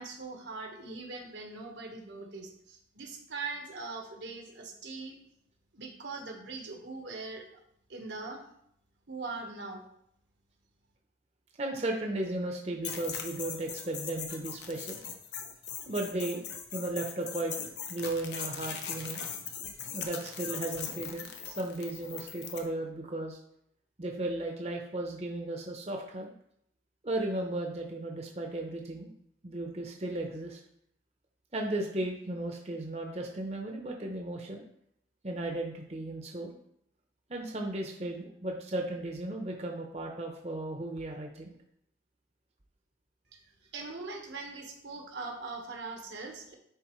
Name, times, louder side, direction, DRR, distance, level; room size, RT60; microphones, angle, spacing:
voice 1, 0.0-5.2 5.7-7.6 7.9-8.4 9.1-9.8 43.3-43.4 43.7-46.5, right 3 dB, 85° right, 2 dB, 1.3 m, -41 dB
voice 2, 11.6-15.0 15.9-16.4 16.7-19.2 19.9-23.4 24.0-26.3 27.0-29.1 29.4-30.6 31.5-34.6 35.2-36.6 37.3-41.5, right 1 dB, 35° right, 2 dB, 0.7 m, -35 dB
sound 1, 12.8-22.7, left 7 dB, 75° left, 0.8 m, -40 dB
10.5 x 4.0 x 3.1 m, 0.72 s
head